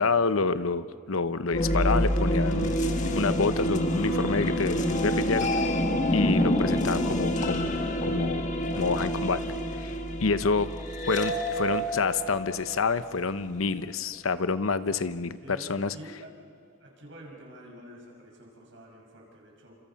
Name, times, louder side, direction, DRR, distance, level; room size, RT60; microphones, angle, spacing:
voice 1, 0.0-5.8 6.1-8.4 8.8-9.4 9.9-10.7 11.1-16.0, left 4 dB, 90° left, 13 dB, 0.8 m, -28 dB
sound 1, 1.5-13.3, equal, 35° left, 1.7 m, -27 dB
voice 2, 8.6-9.5 15.4-16.3 16.8-19.8, right 1 dB, 65° right, 0 dB, 6.4 m, -47 dB
29.5 x 27.0 x 5.9 m, 2.2 s
head